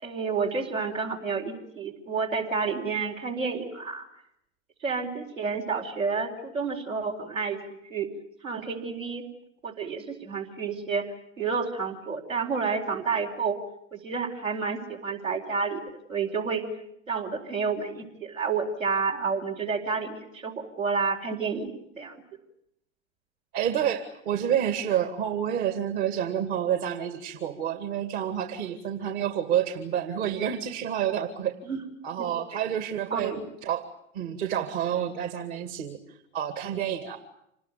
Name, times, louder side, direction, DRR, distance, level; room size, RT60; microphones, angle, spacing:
voice 1, 0.0-4.1 4.8-7.6 7.9-8.1 8.4-9.2 9.6-11.1 11.4-13.6 13.9-15.8 16.1-16.6 17.1-22.2 31.7-31.8 32.2-32.3 33.1-33.4, right 5 dB, 90° right, -1 dB, 4.5 m, -30 dB
voice 2, 23.5-31.5 32.0-33.3 33.6-33.9 34.1-37.2, right 9 dB, 60° right, 9 dB, 2.3 m, -29 dB
27.0 x 20.0 x 9.3 m, 0.78 s
hypercardioid pair, 85°, 38 cm